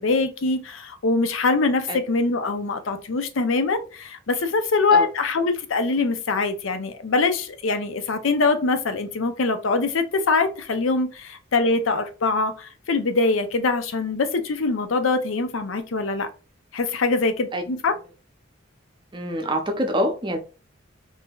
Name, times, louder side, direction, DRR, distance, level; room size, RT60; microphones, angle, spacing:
voice 1, 0.0-16.3 16.7-18.0, left 3 dB, 75° left, 0.6 m, -23 dB
voice 2, 19.1-20.4, equal, 25° right, 0.6 m, -25 dB
3.7 x 2.7 x 2.3 m
head